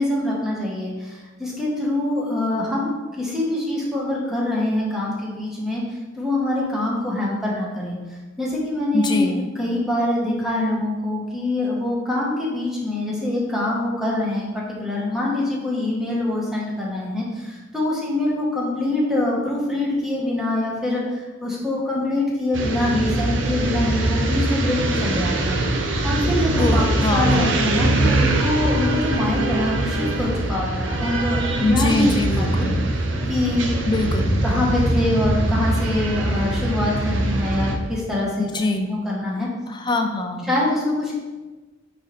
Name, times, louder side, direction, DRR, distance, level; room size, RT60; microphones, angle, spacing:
voice 1, 0.0-5.8 6.1-8.0 8.4-25.6 26.0-32.7 33.3-33.8 34.4-38.5 38.9-39.5 40.5-41.1, left 1 dB, ahead, -5 dB, 1.5 m, -24 dB
voice 2, 8.9-9.5 26.6-27.6 31.6-32.9 33.9-34.4 38.4-39.0 39.7-40.5, left 2 dB, 25° left, 5 dB, 0.6 m, -23 dB
sound 1, 22.5-37.8, right 2 dB, 80° right, 0.8 m, -22 dB
8.7 x 4.0 x 3.4 m, 1.2 s
head